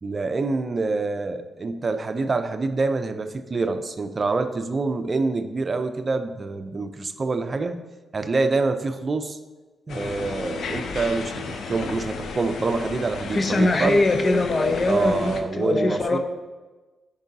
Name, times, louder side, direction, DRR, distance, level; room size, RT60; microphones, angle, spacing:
voice 1, 0.0-7.8 8.1-9.4 9.9-14.0 14.9-16.2, right 3 dB, 45° right, 9 dB, 0.6 m, -26 dB
sound 1, 9.9-15.4, left 4 dB, 70° left, 0.6 m, -33 dB
voice 2, 13.3-16.2, left 2 dB, 45° left, 6 dB, 0.8 m, -22 dB
10.5 x 5.4 x 2.8 m, 1.2 s
supercardioid pair, 50°, 0 cm